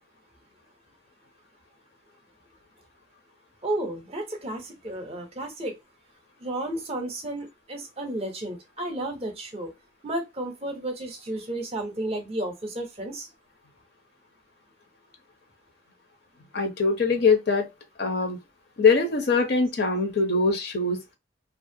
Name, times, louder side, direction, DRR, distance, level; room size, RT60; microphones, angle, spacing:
voice 1, 3.6-5.8 6.4-9.7 10.0-13.3, right 1 dB, 30° right, 0.5 m, -32 dB
voice 2, 16.5-17.7 18.0-18.4 18.8-21.0, left 4 dB, 55° left, 0.5 m, -22 dB
2.4 x 2.1 x 2.6 m
head